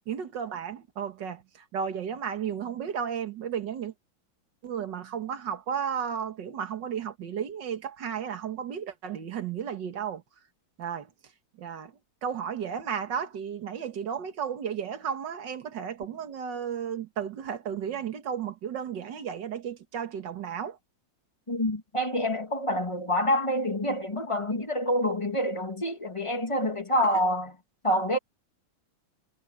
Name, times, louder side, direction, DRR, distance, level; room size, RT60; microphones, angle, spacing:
voice 1, 0.1-1.4 1.7-3.9 4.6-10.2 10.8-11.1 11.6-11.9 12.2-20.8, right 8 dB, 60° right, 2.1 m, -33 dB
voice 2, 21.5-27.5 27.8-28.2, equal, 15° left, 2.0 m, -27 dB
omnidirectional pair, 2.2 m